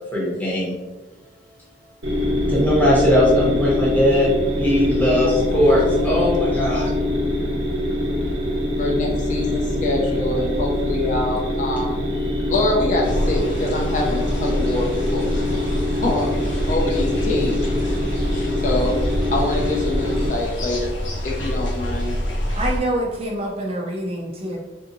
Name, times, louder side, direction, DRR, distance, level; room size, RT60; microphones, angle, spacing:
voice 1, 0.1-0.7 2.5-4.3 4.6-6.9, left 1 dB, 10° left, -5 dB, 0.8 m, -19 dB
sound 1, 2.0-20.3, left 1 dB, 90° right, 1.0 m, -23 dB
voice 2, 5.2-6.2 8.8-11.9 12.3-17.6 18.3-19.0 19.3-20.9 21.2-22.2, left 2 dB, 40° left, -1 dB, 0.5 m, -25 dB
sound 2, 13.0-22.8, equal, 85° left, 0.9 m, -27 dB
voice 3, 22.5-24.6, right 1 dB, 30° right, -1 dB, 0.4 m, -26 dB
3.5 x 2.7 x 2.6 m, 1.2 s
head